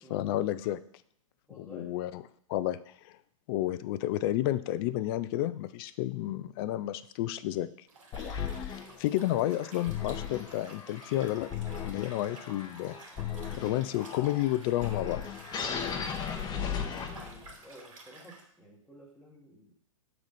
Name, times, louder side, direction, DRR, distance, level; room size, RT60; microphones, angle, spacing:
voice 1, 0.1-0.8 1.6-2.1 2.5-2.8 3.0-3.1 3.5-7.7 8.2-8.7 9.0-11.5 11.8-13.0 13.6-15.2, left 14 dB, 45° left, 13 dB, 0.4 m, -31 dB
voice 2, 1.5-2.0 11.9-12.2 16.4-19.7, equal, ahead, -6 dB, 1.1 m, -53 dB
Liquid, 7.9-18.4, right 3 dB, 70° right, 2.2 m, -52 dB
sound 1, 8.1-17.6, left 7 dB, 25° left, 0.9 m, -37 dB
7.1 x 4.0 x 4.9 m, 0.66 s
hypercardioid pair, 120°, 17 cm